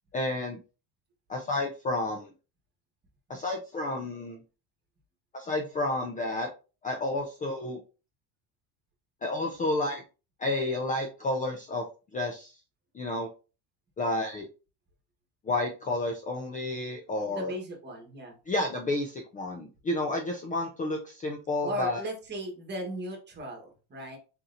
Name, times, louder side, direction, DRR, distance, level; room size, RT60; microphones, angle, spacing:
voice 1, 0.1-0.6 1.3-2.3 3.3-4.4 5.3-6.5 6.8-7.8 9.2-10.0 10.4-11.9 12.1-12.6 12.9-13.3 14.0-14.5 15.5-17.5 18.5-22.0, left 2 dB, 20° left, 3 dB, 0.4 m, -30 dB
voice 2, 17.2-18.4 21.6-24.2, right 1 dB, 25° right, 1 dB, 1.4 m, -37 dB
4.3 x 3.7 x 2.6 m, 0.33 s
cardioid pair, 135°, 40 cm